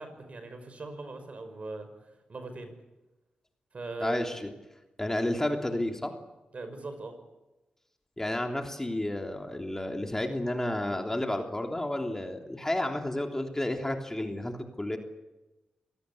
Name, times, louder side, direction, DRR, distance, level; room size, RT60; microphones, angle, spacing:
voice 1, 0.0-1.9 2.3-2.7 3.7-4.3 6.5-7.2, right 2 dB, 50° right, 8 dB, 5.7 m, -39 dB
voice 2, 4.0-4.5 5.0-6.1 8.2-15.0, left 1 dB, 15° left, 3 dB, 3.2 m, -31 dB
26.5 x 18.0 x 8.5 m, 1.0 s
cardioid pair, 70°, 3 cm